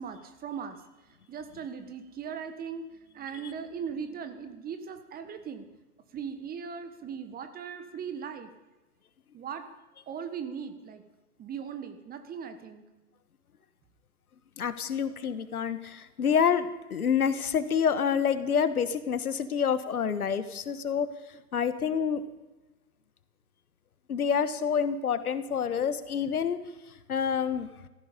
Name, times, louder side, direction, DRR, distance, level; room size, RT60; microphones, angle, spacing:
voice 1, 0.0-2.8 3.1-5.6 6.1-8.5 9.3-9.7 10.1-11.0 11.4-12.9, right 7 dB, 20° right, 9 dB, 1.4 m, -39 dB
voice 2, 14.6-21.1 21.5-22.2 24.1-26.6 27.1-27.7, left 7 dB, 75° left, 13 dB, 1.4 m, -27 dB
16.5 x 14.5 x 5.3 m, 1.1 s
figure-of-eight pair, 110°, 45 cm